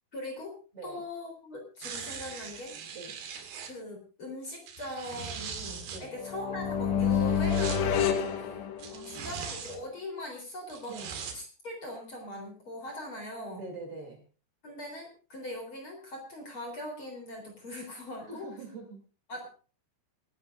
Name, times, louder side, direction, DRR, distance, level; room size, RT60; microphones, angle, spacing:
voice 1, 0.1-0.6 0.8-2.7 3.6-8.6 9.1-11.0 11.3-13.6 14.6-18.5 19.3-19.5, left 1 dB, 30° left, 2 dB, 4.2 m, -41 dB
sound 1, 1.8-3.7 4.5-6.0 7.1-7.8 8.8-9.8 10.7-11.4 12.0-12.1, right 6 dB, 70° right, 3.9 m, -41 dB
sound 2, 6.2-9.3, left 7 dB, 85° left, 3.6 m, -28 dB
voice 2, 8.9-9.4 10.9-11.1 13.6-14.2 18.3-19.0, right 3 dB, 35° right, 2 dB, 3.5 m, -44 dB
27.0 x 11.5 x 2.6 m, 0.36 s
omnidirectional pair, 4.9 m